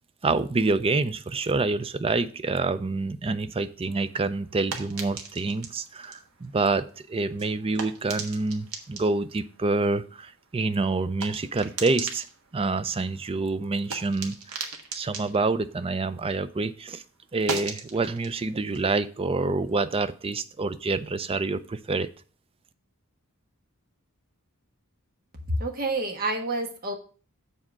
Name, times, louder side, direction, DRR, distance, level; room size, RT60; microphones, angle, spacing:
voice 1, 0.2-12.2 12.5-14.6 14.9-17.0 17.3-22.1, right 3 dB, 25° right, 13 dB, 0.5 m, -27 dB
sound 1, 3.9-16.6 16.9-20.2, right 4 dB, 80° right, 1.4 m, -40 dB
voice 2, 25.6-26.9, right 2 dB, 45° right, 3 dB, 1.4 m, -29 dB
7.4 x 4.3 x 6.1 m, 0.39 s
head